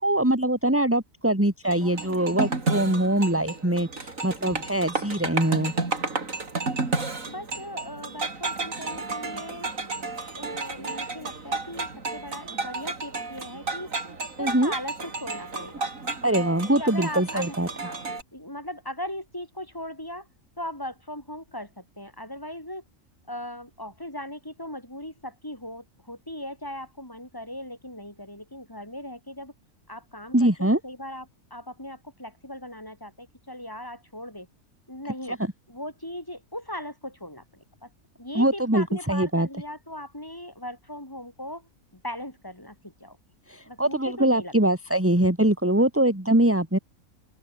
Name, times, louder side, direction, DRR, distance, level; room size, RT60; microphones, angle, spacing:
voice 1, 0.0-5.7 14.4-14.7 16.2-17.9 30.3-30.8 35.3-35.5 38.3-39.5 43.5-46.8, right 1 dB, 10° right, 2.9 m, -23 dB
sound 1, 1.6-18.2, right 3 dB, 75° right, 3.6 m, -32 dB
voice 2, 7.2-9.7 10.3-13.9 14.4-15.9 16.7-17.5 17.8-18.0 18.3-20.2 20.6-22.8 23.3-29.5 29.9-31.2 31.5-34.5 34.9-35.4 35.7-37.4 37.8-37.9 38.2-41.6 42.0-43.2 43.7-44.5, left 1 dB, 15° left, 4.9 m, -38 dB
open air
omnidirectional pair, 1.4 m